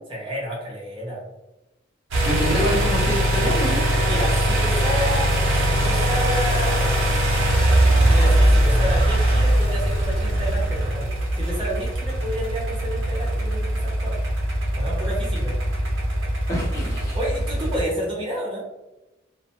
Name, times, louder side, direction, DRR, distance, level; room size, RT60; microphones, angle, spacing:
voice 1, 0.1-1.2 2.5-2.7 4.0-7.0 8.1-11.1 11.3-14.1 14.7-15.5 17.1-18.6, equal, 25° right, -4 dB, 0.7 m, -30 dB
sound 1, 2.1-17.8, right 1 dB, 85° right, 0.7 m, -21 dB
voice 2, 2.3-3.8 16.5-17.2, right 1 dB, 15° left, -6 dB, 0.6 m, -26 dB
2.5 x 2.2 x 2.7 m, 0.97 s
head